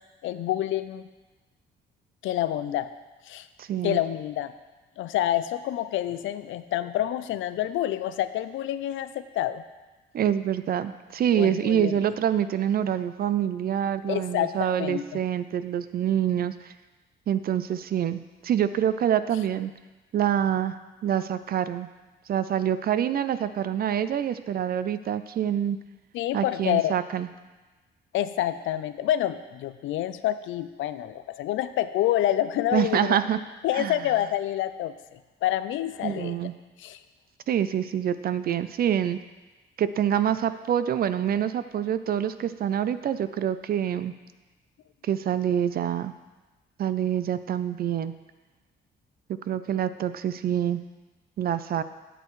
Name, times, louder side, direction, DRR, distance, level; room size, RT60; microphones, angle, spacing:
voice 1, 0.2-1.0 2.2-2.9 3.3-3.5 3.8-4.5 5.0-9.6 11.3-12.0 14.1-15.2 26.1-26.9 28.1-33.2 33.6-34.9 35.4-36.4 36.8-37.0, left 12 dB, 80° left, 12 dB, 0.4 m, -27 dB
voice 2, 3.6-4.0 10.1-16.7 17.3-19.7 20.1-20.8 21.0-21.9 22.3-25.8 26.3-27.3 32.7-33.4 33.7-34.0 36.0-36.5 37.5-39.2 39.8-44.1 45.0-46.1 46.8-48.1 49.5-50.8 51.4-51.8, right 9 dB, 50° right, 13 dB, 0.4 m, -26 dB
8.5 x 7.9 x 3.1 m, 1.2 s
cardioid pair, 90°, 20 cm